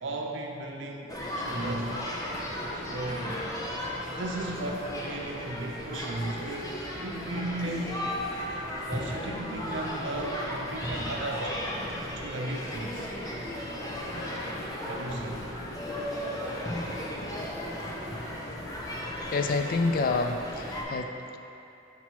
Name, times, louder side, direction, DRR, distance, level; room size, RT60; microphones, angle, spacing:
voice 1, 0.0-2.0 2.7-3.4 4.1-8.1 8.9-11.6 12.1-13.1 14.8-15.4, right 1 dB, 70° right, 1 dB, 0.6 m, -35 dB
sound 1, 1.1-20.8, left 1 dB, 20° left, 0.7 m, -35 dB
voice 2, 19.3-21.4, left 3 dB, 50° left, 6 dB, 0.3 m, -28 dB
5.9 x 5.9 x 3.0 m, 2.8 s
head